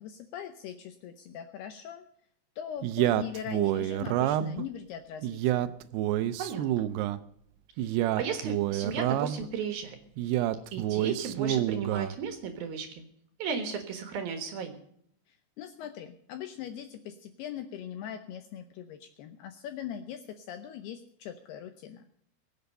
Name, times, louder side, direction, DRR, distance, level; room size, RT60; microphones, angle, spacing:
voice 1, 0.0-2.0 2.6-5.7 15.3-22.0, left 9 dB, 75° left, 8 dB, 2.4 m, -41 dB
Male speech man speaking, 2.8-4.6 5.2-7.2 7.8-9.5 10.2-12.2, right 13 dB, 85° right, 2.3 m, -28 dB
voice 2, 6.4-6.9 7.8-10.0 10.3-13.0 13.4-14.8, right 6 dB, 65° right, 6 dB, 2.8 m, -35 dB
22.5 x 8.1 x 5.4 m, 0.70 s
omnidirectional pair, 5.4 m